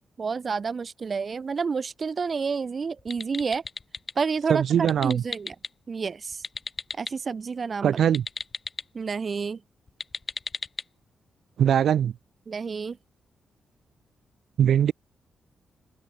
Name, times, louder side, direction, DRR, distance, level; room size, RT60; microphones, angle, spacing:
voice 1, 0.2-3.6 4.2-4.6 5.0-5.6 5.9-6.4 7.0-8.0 8.9-9.6 12.5-13.0, right 5 dB, 40° right, 2.2 m, -29 dB
sound 1, 3.0-4.1 4.8-5.7 6.3-7.1 8.0-8.8 9.9-10.8, left 4 dB, 30° left, 2.2 m, -35 dB
voice 2, 4.5-5.2 7.8-8.2 11.6-12.1 14.6-14.9, right 9 dB, 75° right, 2.5 m, -21 dB
open air
wide cardioid pair, 135°, 0 cm